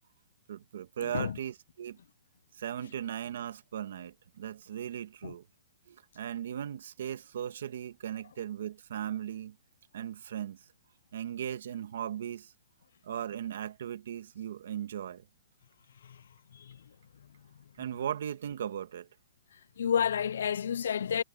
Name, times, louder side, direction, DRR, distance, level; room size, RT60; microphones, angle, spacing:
voice 1, 0.5-2.0 2.6-5.4 5.9-9.5 9.9-10.6 11.1-12.5 13.0-15.2 17.8-19.1, right 10 dB, 50° right, 1.4 m, -37 dB
voice 2, 1.0-1.4 5.2-5.3 16.0-16.2 16.5-16.8 19.8-21.2, left 8 dB, 55° left, 0.3 m, -30 dB
hypercardioid pair, 180°, 0 cm